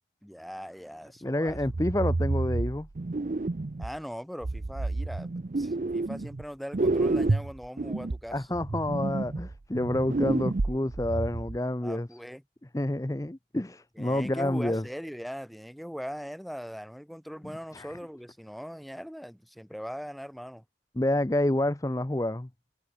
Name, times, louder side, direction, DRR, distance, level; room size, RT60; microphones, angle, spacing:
voice 1, 0.2-1.6 3.8-5.3 5.6-8.5 11.8-12.4 14.0-20.6, equal, ahead, 2.9 m, -40 dB
voice 2, 1.2-2.9 8.3-12.1 12.7-14.8 17.7-18.0 21.0-22.5, left 1 dB, 20° left, 0.6 m, -28 dB
sound 1, 1.5-4.0 4.4-6.4 6.7-11.6, right 2 dB, 45° right, 0.5 m, -29 dB
head